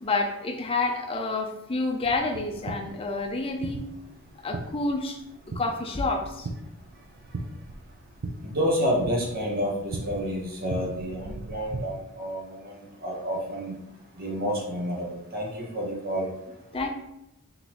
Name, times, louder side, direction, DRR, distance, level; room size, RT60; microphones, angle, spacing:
voice 1, 0.0-3.8 4.4-5.2 5.5-6.5 16.7-16.9, left 3 dB, 25° left, 3 dB, 0.5 m, -28 dB
sound 1, 2.0-11.8, right 2 dB, 90° right, 0.5 m, -39 dB
voice 2, 8.4-13.7 14.2-16.3, equal, 45° right, -1 dB, 1.1 m, -29 dB
3.9 x 3.8 x 3.0 m, 0.88 s
head